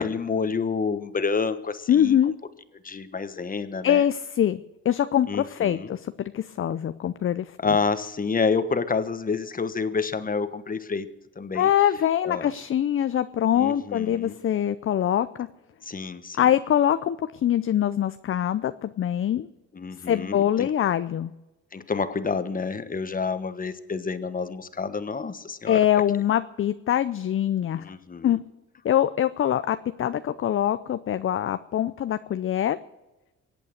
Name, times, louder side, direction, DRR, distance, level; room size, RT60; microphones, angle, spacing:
voice 1, 0.0-2.2 2.8-4.1 5.3-5.9 7.6-11.1 11.4-11.7 12.2-12.5 13.5-14.3 15.8-16.4 19.7-20.7 21.7-25.8 27.8-28.4, left 5 dB, 30° left, 11 dB, 1.2 m, -28 dB
voice 2, 1.9-2.3 3.8-7.6 11.6-15.5 16.4-19.5 20.0-21.3 25.7-27.8 28.2-28.4 28.8-32.8, left 10 dB, 45° left, 12 dB, 0.6 m, -24 dB
23.5 x 8.5 x 6.5 m, 1.0 s
cardioid pair, 90°, 30 cm